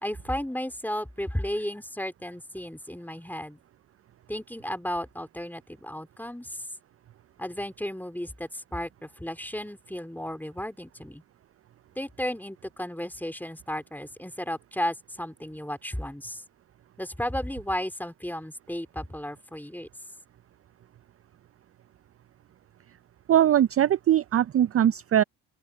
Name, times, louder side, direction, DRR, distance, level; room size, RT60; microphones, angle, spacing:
voice 1, 0.0-3.6 4.3-6.7 7.4-11.2 12.0-16.4 17.0-19.9, left 1 dB, 5° left, 3.5 m, -34 dB
voice 2, 23.3-25.2, right 11 dB, 30° right, 0.5 m, -21 dB
open air
hypercardioid pair, 60°, 49 cm